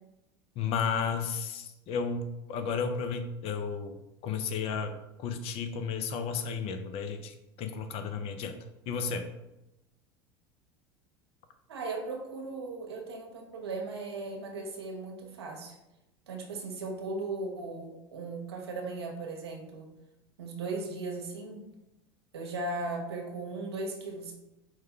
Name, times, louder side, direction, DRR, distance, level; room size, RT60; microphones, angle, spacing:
voice 1, 0.6-8.6 8.9-9.3, left 6 dB, 50° left, 8 dB, 0.5 m, -33 dB
voice 2, 11.7-15.8 16.3-19.9 20.4-21.7 22.3-24.3, right 3 dB, 85° right, 1 dB, 0.8 m, -37 dB
4.7 x 2.2 x 3.6 m, 0.94 s
hypercardioid pair, 85°, 13 cm